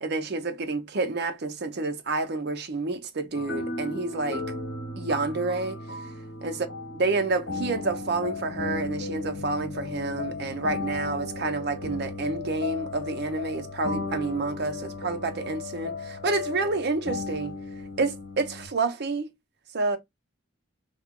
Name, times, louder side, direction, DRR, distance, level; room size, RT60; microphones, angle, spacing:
voice 1, 0.0-4.4 5.0-5.8 6.4-6.5 7.0-17.6 18.0-19.3 19.7-20.0, right 3 dB, 55° right, 0.6 m, -29 dB
sound 1, 3.3-18.7, left 3 dB, 65° left, 1.2 m, -35 dB
2.8 x 2.3 x 3.6 m
head